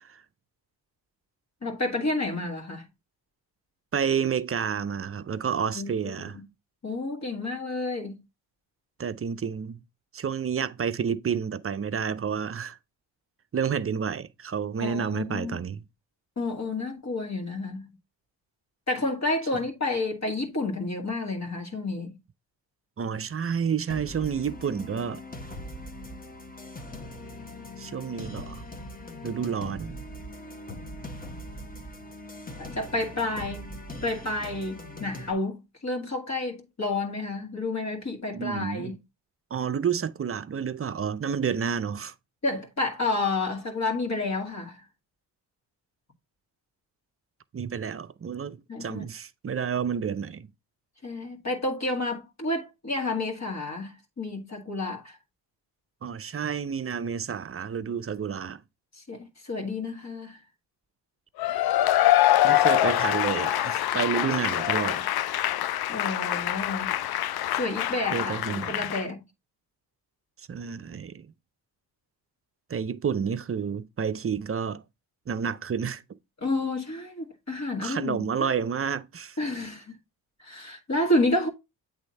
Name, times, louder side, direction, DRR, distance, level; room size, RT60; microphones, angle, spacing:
voice 1, 1.6-2.9 5.7-6.3 6.8-8.2 14.8-15.6 16.4-17.9 18.9-22.2 32.6-33.7 34.0-38.9 42.4-44.8 48.7-49.1 51.0-55.2 59.0-60.4 65.9-67.0 67.5-69.2 76.4-78.5 79.4-79.9 80.4-81.5, left 2 dB, 35° left, 1.9 m, -30 dB
voice 2, 3.9-6.4 9.0-9.8 10.1-12.8 13.5-15.8 23.0-25.2 27.8-28.6 29.2-30.1 38.3-38.9 39.5-42.1 47.5-50.5 56.0-58.6 62.4-65.1 68.1-68.9 70.5-71.3 72.7-74.8 75.3-76.0 77.8-79.4, right 7 dB, 30° right, 0.6 m, -30 dB
sound 1, 23.9-35.3, left 1 dB, 20° left, 1.2 m, -41 dB
Cheering / Applause / Crowd, 61.4-69.0, left 14 dB, 55° left, 0.5 m, -25 dB
8.1 x 3.6 x 4.2 m
supercardioid pair, 50°, 47 cm